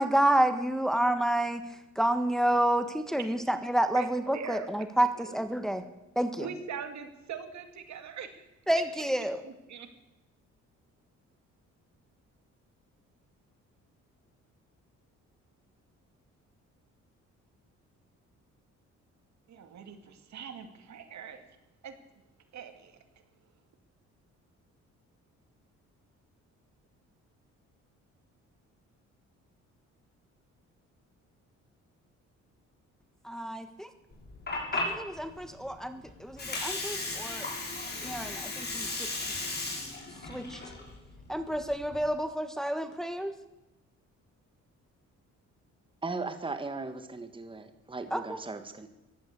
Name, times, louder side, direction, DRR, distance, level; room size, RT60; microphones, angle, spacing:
voice 1, 0.0-5.8 6.1-6.5 8.7-9.4 33.2-33.9 34.7-37.5 38.0-39.1 39.6-39.7 40.2-40.6 41.3-43.3 48.1-48.4, right 1 dB, ahead, 8 dB, 1.5 m, -29 dB
voice 2, 4.3-4.7 5.2-5.4 6.4-8.5 9.4-9.9 19.5-21.4 21.8-21.9 22.5-23.0, right 7 dB, 65° right, 8 dB, 2.4 m, -42 dB
Water, 34.1-42.1, left 2 dB, 35° left, 6.4 m, -36 dB
voice 3, 46.0-48.9, right 3 dB, 15° right, 9 dB, 1.6 m, -37 dB
15.5 x 11.5 x 8.3 m, 0.96 s
cardioid pair, 90°, 30 cm